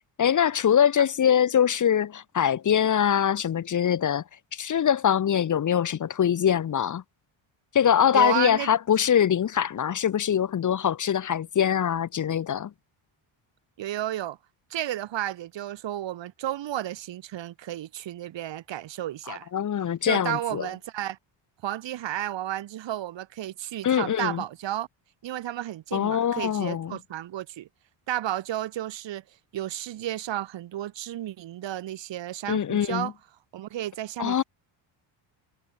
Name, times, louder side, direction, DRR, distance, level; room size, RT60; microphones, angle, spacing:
voice 1, 0.2-4.2 4.5-7.0 7.7-12.7 19.3-20.7 23.8-24.4 25.9-27.0 32.5-33.1 34.2-34.4, left 9 dB, 40° left, 1.5 m, -23 dB
voice 2, 8.1-8.7 13.8-14.4 14.7-19.5 20.0-21.2 21.6-24.9 25.2-27.7 28.1-29.2 29.5-33.1 33.5-34.4, right 13 dB, 60° right, 5.3 m, -32 dB
cardioid pair, 145°, 48 cm